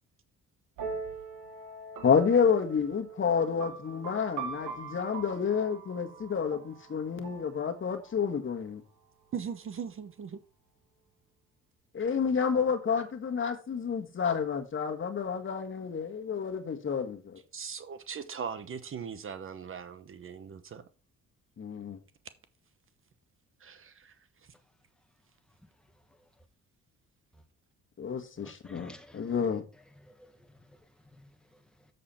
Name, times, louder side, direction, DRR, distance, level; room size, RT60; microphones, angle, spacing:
sound 1, 0.8-8.3, right 5 dB, 90° right, 2.0 m, -42 dB
voice 1, 2.0-8.8 11.9-17.4 21.6-22.0 28.0-29.6, left 6 dB, 40° left, 1.5 m, -29 dB
voice 2, 9.3-10.4 17.5-20.8 23.6-24.2 24.4-24.5, right 7 dB, 45° right, 1.0 m, -39 dB
voice 3, 28.4-29.3 30.0-31.9, left 1 dB, 5° left, 1.7 m, -55 dB
7.5 x 6.8 x 4.3 m
cardioid pair, 90°, 30 cm